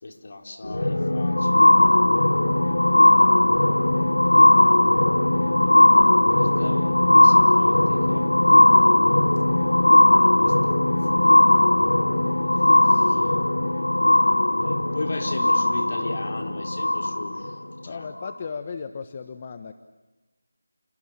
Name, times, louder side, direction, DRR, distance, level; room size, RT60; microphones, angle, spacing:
voice 1, 0.0-1.7 6.3-8.3 9.6-11.3 12.9-13.2 14.3-18.1, left 2 dB, 50° left, 4.3 m, -37 dB
sound 1, 0.6-17.5 18.2-18.3, left 1 dB, 90° left, 1.1 m, -18 dB
voice 2, 17.8-19.7, left 5 dB, 30° left, 1.3 m, -35 dB
30.0 x 27.0 x 7.4 m
figure-of-eight pair, 170°, 0 cm